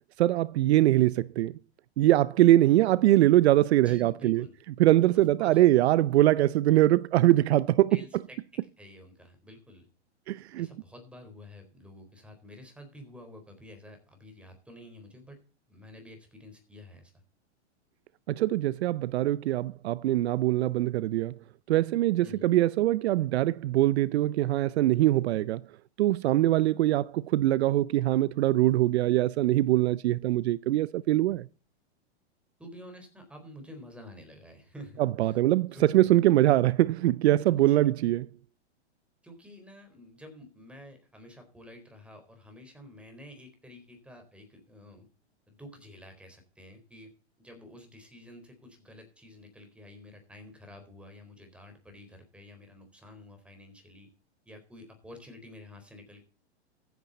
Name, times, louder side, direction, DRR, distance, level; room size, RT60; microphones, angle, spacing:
voice 1, 0.2-1.5 2.0-4.4 4.8-7.9 10.3-10.7 18.3-21.4 21.7-25.6 26.0-31.5 35.0-38.2, right 15 dB, 70° right, 0.6 m, -23 dB
voice 2, 3.8-4.5 5.4-5.6 7.9-9.9 10.6-15.4 15.7-17.1 22.2-22.5 32.6-35.4 35.7-36.2 37.4-37.9 39.2-45.1 45.5-54.1 54.5-56.2, left 1 dB, 5° right, 4.2 m, -49 dB
14.5 x 9.4 x 4.2 m
hypercardioid pair, 135°, 34 cm